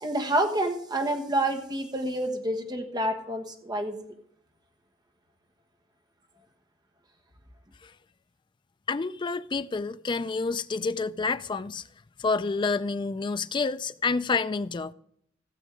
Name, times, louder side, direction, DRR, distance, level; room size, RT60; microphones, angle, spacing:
voice 1, 0.0-4.1, right 1 dB, 20° right, 1.3 m, -28 dB
voice 2, 8.9-11.8 12.2-14.9, left 4 dB, 25° left, 0.3 m, -28 dB
16.0 x 7.3 x 4.8 m
head